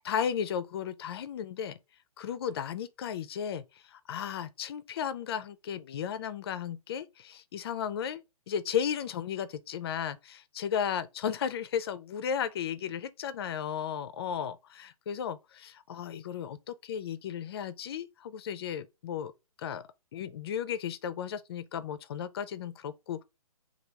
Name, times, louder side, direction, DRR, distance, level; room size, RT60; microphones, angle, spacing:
voice 1, 0.0-1.8 2.2-19.3 19.6-19.8 20.1-23.2, left 8 dB, 45° left, 0.4 m, -34 dB
3.3 x 2.3 x 4.4 m
hypercardioid pair, 145°, 19 cm